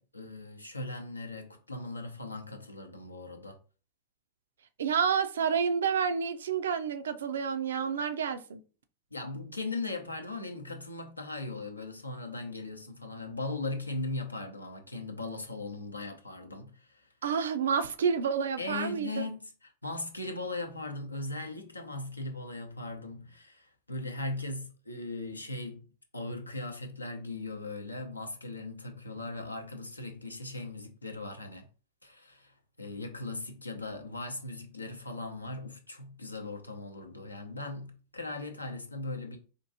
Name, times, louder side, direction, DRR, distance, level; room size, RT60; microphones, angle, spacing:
voice 1, 0.0-3.6 9.1-17.1 18.6-19.5 19.8-25.9 26.1-31.7 32.0-39.4, left 2 dB, 85° left, 0.6 m, -39 dB
voice 2, 4.8-8.6 17.2-19.2, right 6 dB, 65° right, 0.4 m, -29 dB
4.4 x 2.5 x 2.6 m
figure-of-eight pair, 90°, 0 cm